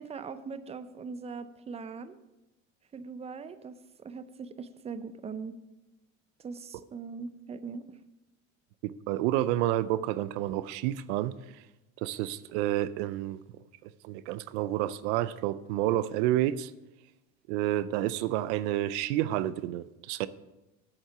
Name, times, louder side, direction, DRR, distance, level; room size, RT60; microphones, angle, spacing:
voice 1, 0.0-2.2 2.9-5.6 6.4-8.0, right 5 dB, 20° right, 13 dB, 0.6 m, -41 dB
voice 2, 8.8-11.6 12.0-13.4 13.8-16.7 17.5-20.3, right 14 dB, 85° right, 17 dB, 0.5 m, -30 dB
8.0 x 7.5 x 5.9 m, 0.99 s
supercardioid pair, 105°, 34 cm